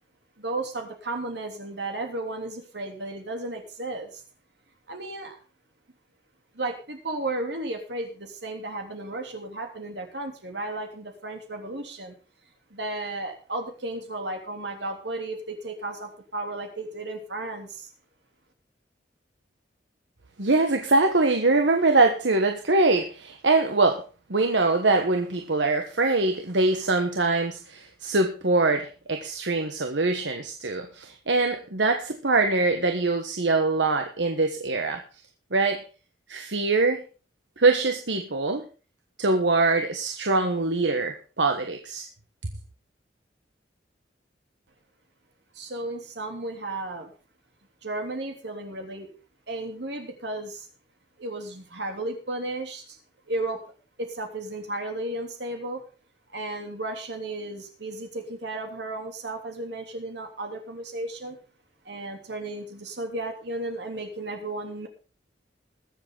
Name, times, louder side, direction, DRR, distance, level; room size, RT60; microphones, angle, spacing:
voice 1, 0.4-4.2 4.9-5.4 6.5-12.2 12.7-17.9 45.5-47.1 47.8-49.1 49.5-50.7 51.2-53.0 53.3-53.6 54.0-55.8 56.3-61.4 61.8-64.9, right 2 dB, 70° right, 3 dB, 3.2 m, -34 dB
voice 2, 20.4-24.0 24.3-35.0 35.5-35.8 36.3-37.0 37.6-38.7 39.2-42.1, right 3 dB, 85° right, 5 dB, 1.3 m, -23 dB
21.5 x 7.7 x 3.9 m, 0.35 s
head